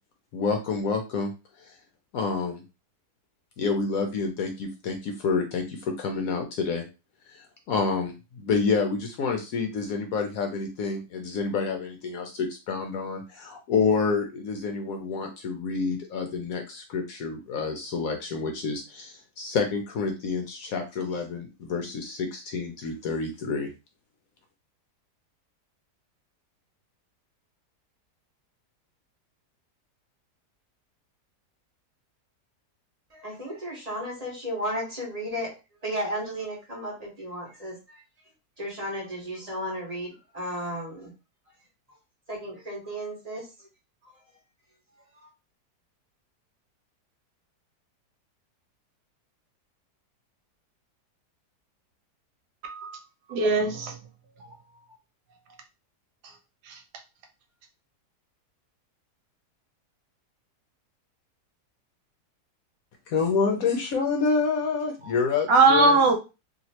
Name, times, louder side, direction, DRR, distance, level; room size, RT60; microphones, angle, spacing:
voice 1, 0.3-1.3 1.6-1.8 2.1-2.6 3.6-6.8 7.3-23.7 63.1-66.0, left 4 dB, 70° left, 0.9 m, -28 dB
voice 2, 33.1-35.5 35.8-38.0 38.6-41.1 42.3-43.7 44.0-44.1 45.1-45.3, equal, 25° right, 1.4 m, -34 dB
voice 3, 52.6-53.0 53.3-54.0 54.4-54.5 56.7-56.8 65.5-66.1, right 3 dB, 75° right, 1.2 m, -20 dB
3.0 x 2.8 x 2.8 m
omnidirectional pair, 1.8 m